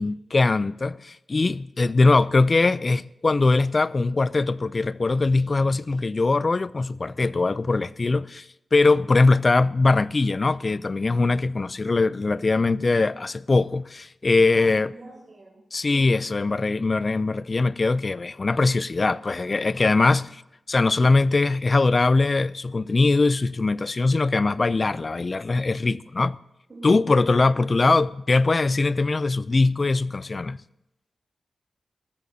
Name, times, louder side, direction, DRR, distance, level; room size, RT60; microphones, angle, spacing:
voice 1, 0.0-14.9 15.7-20.4 20.7-26.4 26.8-30.6, left 3 dB, 35° left, 0.3 m, -21 dB
voice 2, 14.5-15.6 15.9-16.2 26.7-26.9 27.6-27.7, right 2 dB, 35° right, 5.3 m, -43 dB
20.0 x 14.0 x 2.7 m
wide cardioid pair, 110°, 0 cm